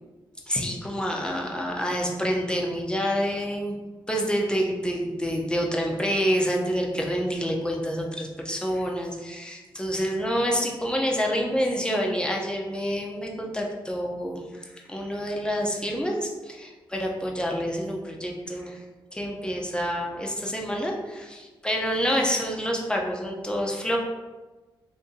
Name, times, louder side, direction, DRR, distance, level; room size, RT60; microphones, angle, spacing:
voice 1, 0.5-3.8 4.1-18.8 19.1-24.0, equal, 10° left, 0 dB, 0.6 m, -27 dB
2.7 x 2.6 x 3.7 m, 1.2 s
cardioid pair, 65°, 9 cm